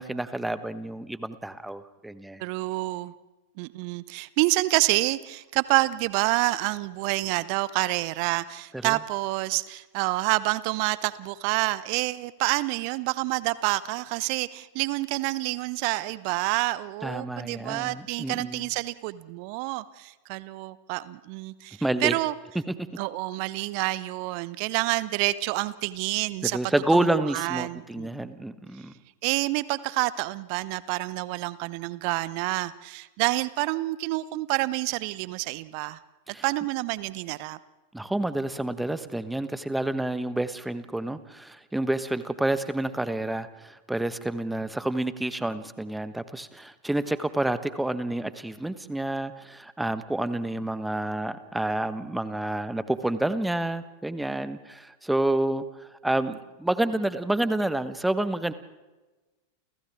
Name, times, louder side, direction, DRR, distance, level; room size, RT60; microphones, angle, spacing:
voice 1, 0.0-2.4 8.8-9.0 17.0-18.7 21.8-22.2 22.7-22.8 26.4-28.9 36.3-36.4 37.9-58.5, right 1 dB, 5° right, 13 dB, 1.3 m, -29 dB
voice 2, 2.4-3.1 3.6-22.3 23.0-26.6 26.9-28.1 29.2-36.0 36.4-37.6, right 20 dB, 45° right, 18 dB, 0.8 m, -28 dB
29.5 x 29.0 x 3.6 m, 1.1 s
figure-of-eight pair, 90°, 0 cm